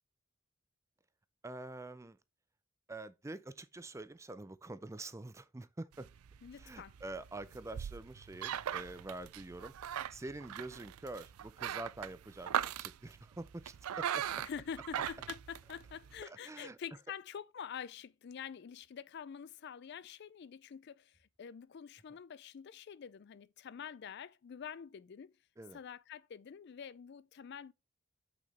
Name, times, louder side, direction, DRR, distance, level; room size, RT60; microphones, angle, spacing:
voice 1, 1.4-2.2 2.9-6.1 6.5-9.7 10.1-14.4 16.2-16.8 25.6-25.8, right 2 dB, 15° right, 0.4 m, -46 dB
sound 1, 5.9-16.2, right 9 dB, 85° right, 0.4 m, -40 dB
voice 2, 6.4-6.9 14.4-25.4 25.7-27.7, left 7 dB, 50° left, 0.4 m, -47 dB
6.1 x 5.9 x 4.2 m
head